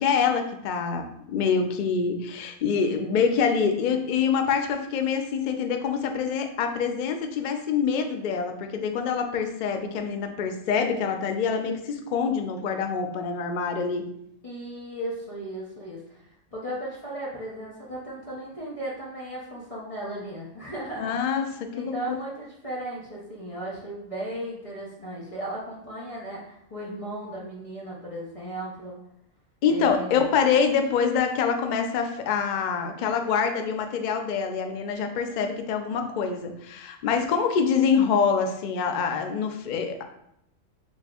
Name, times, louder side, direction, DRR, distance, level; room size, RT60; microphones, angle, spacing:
voice 1, 0.0-14.1 21.0-21.5 21.8-22.2 29.6-40.0, left 6 dB, 85° left, 5 dB, 0.4 m, -25 dB
voice 2, 14.4-16.2 16.5-21.2 21.7-28.9 29.7-30.3, right 1 dB, 35° left, -5 dB, 0.7 m, -36 dB
4.2 x 3.4 x 2.3 m, 0.75 s
omnidirectional pair, 1.3 m